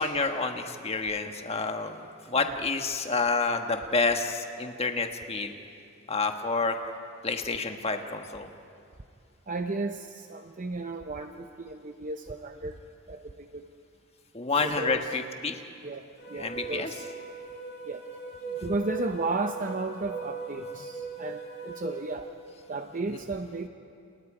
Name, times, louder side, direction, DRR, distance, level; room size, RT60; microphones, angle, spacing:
voice 1, 0.0-2.0 2.3-5.5 6.1-6.8 7.2-8.5 14.3-15.6 16.3-16.9, left 3 dB, 30° left, 5 dB, 1.4 m, -29 dB
voice 2, 9.5-12.8 13.1-13.7 14.5-15.1 15.8-17.1 17.9-18.1 18.6-22.3 22.7-23.7, right 3 dB, 35° right, 6 dB, 0.7 m, -34 dB
sound 1, 16.2-22.1, right 4 dB, 55° left, 6.1 m, -39 dB
29.5 x 29.5 x 5.0 m, 2.4 s
head